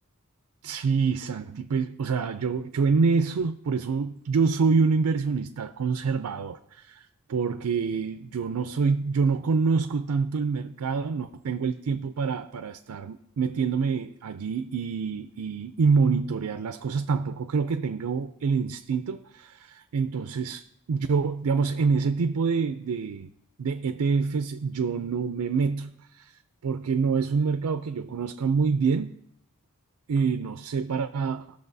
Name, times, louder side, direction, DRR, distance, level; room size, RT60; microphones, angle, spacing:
voice 1, 0.6-7.0 7.3-23.3 23.6-26.3 26.6-29.1 30.1-31.5, right 5 dB, 85° right, 0.4 m, -26 dB
17.0 x 6.5 x 2.7 m
head